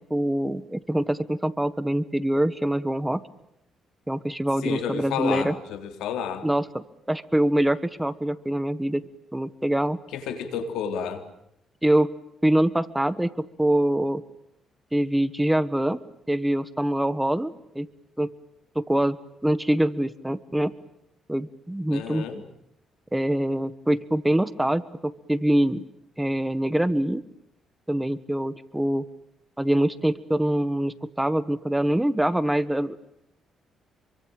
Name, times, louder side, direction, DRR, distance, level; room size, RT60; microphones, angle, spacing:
voice 1, 0.1-3.2 4.1-5.5 6.4-9.0 9.3-10.0 11.8-12.1 12.4-14.2 14.9-16.0 16.3-17.9 18.2-18.3 18.7-19.2 19.4-20.7 21.3-22.3 23.1-25.8 26.2-27.2 27.9-29.0 29.6-33.0, right 1 dB, 5° right, 15 dB, 1.4 m, -24 dB
voice 2, 4.6-6.5 10.1-11.2 21.9-22.4, left 7 dB, 85° left, 8 dB, 3.7 m, -31 dB
27.5 x 24.0 x 9.0 m, 0.76 s
cardioid pair, 90°, 0 cm